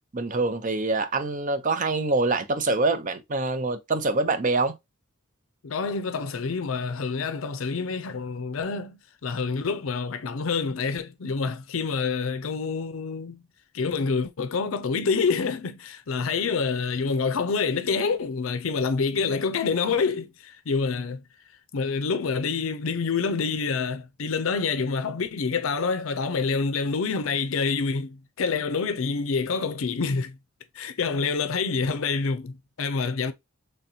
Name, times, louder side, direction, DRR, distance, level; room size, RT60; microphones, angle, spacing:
voice 1, 0.1-4.7, right 3 dB, 40° right, 0.6 m, -25 dB
voice 2, 5.6-13.4 13.7-21.2 21.7-30.4 30.7-33.3, left 5 dB, 75° left, 0.5 m, -27 dB
3.9 x 3.4 x 2.8 m
head